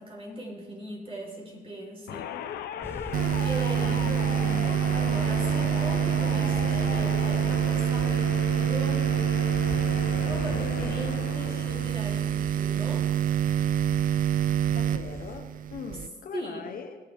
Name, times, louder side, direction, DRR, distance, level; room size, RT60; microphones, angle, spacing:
voice 1, 0.0-2.3 3.4-9.1 10.2-13.1 16.3-16.7, right 1 dB, 35° right, -2 dB, 4.2 m, -39 dB
sound 1, 2.1-12.4, left 7 dB, 80° left, 0.9 m, -36 dB
sound 2, 2.8-15.4, left 1 dB, 15° left, 1.6 m, -41 dB
sound 3, 3.1-16.1, right 9 dB, 55° right, 0.4 m, -26 dB
voice 2, 3.7-4.2 10.8-10.9 14.7-17.0, left 6 dB, 60° left, 6 dB, 1.1 m, -41 dB
20.5 x 7.4 x 3.6 m, 1.4 s
supercardioid pair, 70°, 17 cm